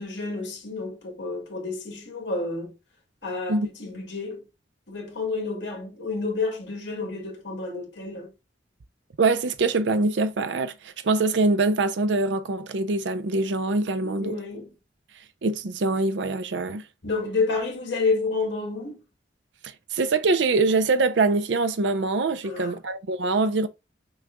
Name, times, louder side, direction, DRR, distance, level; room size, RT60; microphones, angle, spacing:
voice 1, 0.0-2.7 3.2-4.4 4.9-8.3 14.0-14.7 17.0-19.0 22.4-22.7, left 3 dB, 75° left, 2.2 m, -30 dB
voice 2, 9.2-14.4 15.4-16.8 19.6-23.7, right 3 dB, 70° right, 0.5 m, -24 dB
6.1 x 2.3 x 3.6 m
head